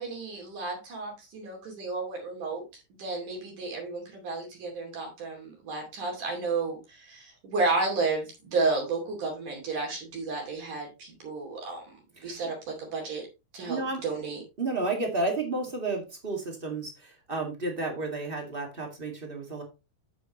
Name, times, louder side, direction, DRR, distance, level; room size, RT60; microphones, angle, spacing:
voice 1, 0.0-2.6 2.9-11.8 12.2-13.3 13.5-14.4, right 3 dB, 55° right, 0 dB, 4.0 m, -32 dB
voice 2, 13.7-14.0 14.6-19.6, right 2 dB, 30° right, 2 dB, 1.0 m, -32 dB
9.2 x 8.0 x 3.0 m, 0.25 s
omnidirectional pair, 4.5 m